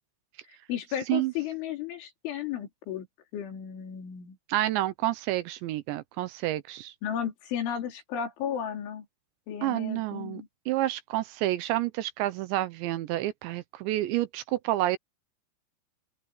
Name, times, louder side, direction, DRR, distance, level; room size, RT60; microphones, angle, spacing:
voice 1, 0.7-3.1 3.3-4.4 7.0-9.1 9.5-10.5, left 9 dB, 75° left, 5.8 m, -34 dB
voice 2, 4.5-6.9 9.6-15.0, right 15 dB, 80° right, 2.9 m, -29 dB
open air
omnidirectional pair, 5.5 m